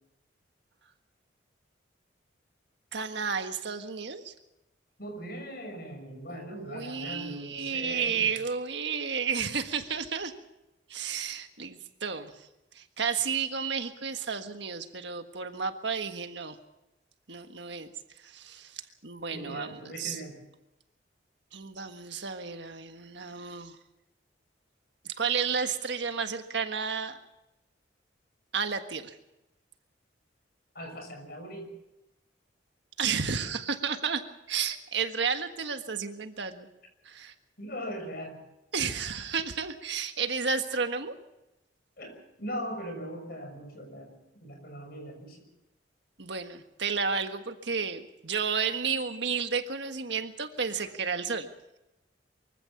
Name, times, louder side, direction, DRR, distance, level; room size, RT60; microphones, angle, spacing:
voice 1, 2.9-4.3 6.3-10.3 10.9-12.5 12.7-16.6 17.3-17.9 18.2-20.2 21.5-23.8 25.0-27.2 28.5-29.2 33.0-34.2 34.5-36.7 37.0-37.3 38.7-41.2 46.2-51.5, right 6 dB, 70° right, 7 dB, 1.5 m, -32 dB
voice 2, 5.0-8.3 19.3-20.4 30.7-31.7 37.6-38.4 42.0-45.4, equal, 50° left, 4 dB, 6.4 m, -40 dB
24.0 x 15.5 x 7.2 m, 0.91 s
head